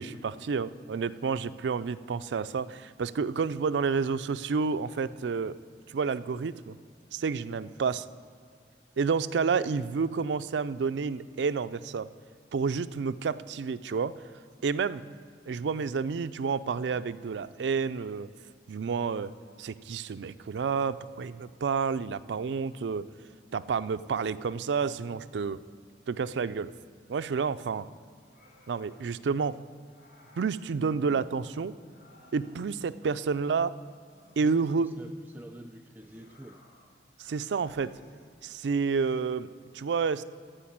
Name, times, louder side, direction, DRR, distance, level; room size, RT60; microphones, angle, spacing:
voice 1, 0.0-5.6 5.9-6.8 7.1-8.1 9.0-12.1 12.5-14.1 14.6-15.0 15.5-18.3 18.7-19.3 19.6-23.1 23.5-25.6 26.1-26.7 27.1-27.9 28.7-29.6 30.4-31.7 32.3-33.7 34.4-34.9 37.2-37.9 38.4-40.2, right 5 dB, 85° right, 13 dB, 0.4 m, -30 dB
sound 1, 28.2-29.1 29.9-30.6 31.8-32.8 34.1-35.2 36.0-36.9 37.7-38.7, left 1 dB, 65° left, 3.0 m, -59 dB
voice 2, 34.4-36.6, right 1 dB, 10° right, 3 dB, 0.4 m, -46 dB
14.5 x 5.0 x 8.6 m, 2.1 s
head